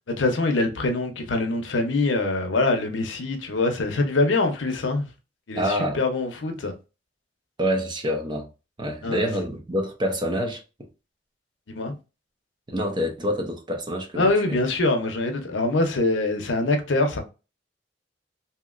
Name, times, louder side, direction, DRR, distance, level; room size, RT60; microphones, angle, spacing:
voice 1, 0.1-5.1 5.5-6.7 9.0-9.3 11.7-11.9 14.2-17.2, left 2 dB, 80° left, 0.7 m, -24 dB
voice 2, 5.6-6.0 7.6-8.5 8.8-10.6 12.7-14.6, equal, 25° right, 0.7 m, -27 dB
2.8 x 2.8 x 2.4 m
head